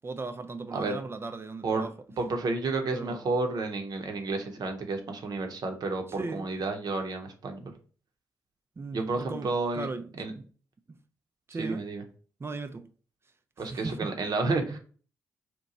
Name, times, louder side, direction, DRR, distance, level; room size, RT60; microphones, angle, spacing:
voice 1, 0.0-1.9 2.9-3.2 6.1-6.5 8.8-9.5 9.7-10.5 10.9-11.0 11.5-11.8 12.4-12.9 13.6-14.1, right 3 dB, 30° right, 0.4 m, -37 dB
voice 2, 0.7-1.0 1.6-1.9 2.2-6.0 6.3-7.7 8.9-9.9 10.2-10.3 11.6-12.0 13.6-14.8, right 3 dB, 55° right, 0.7 m, -31 dB
2.9 x 2.2 x 3.8 m
hypercardioid pair, 40°, 8 cm